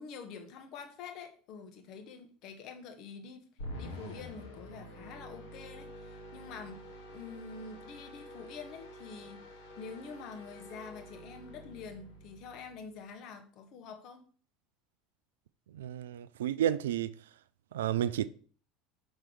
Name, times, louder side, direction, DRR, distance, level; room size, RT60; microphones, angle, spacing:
voice 1, 0.0-3.4 3.8-9.4 9.8-14.2, left 5 dB, 50° left, 1.2 m, -47 dB
sound 1, 3.6-13.0, equal, 70° left, 1.9 m, -48 dB
voice 2, 15.7-17.1 17.7-18.3, right 11 dB, 65° right, 0.3 m, -31 dB
6.0 x 4.4 x 4.8 m
figure-of-eight pair, 70°, 0 cm